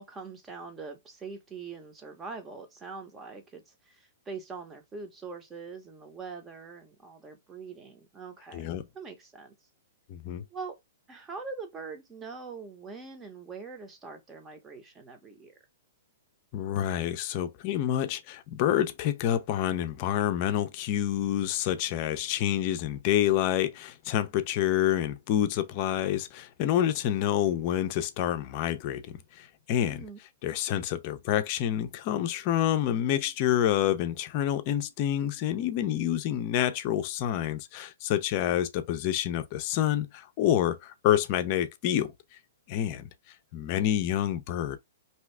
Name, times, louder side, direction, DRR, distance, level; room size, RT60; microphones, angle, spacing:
voice 1, 0.0-8.7 8.9-9.5 10.5-10.8 11.1-15.5 29.8-30.2, right 4 dB, 15° right, 0.8 m, -43 dB
voice 2, 10.1-10.4 16.5-29.0 29.4-30.0 30.4-42.1 42.7-43.1 43.5-44.8, left 11 dB, 40° left, 0.5 m, -28 dB
2.7 x 2.3 x 3.2 m
hypercardioid pair, 140°, 0 cm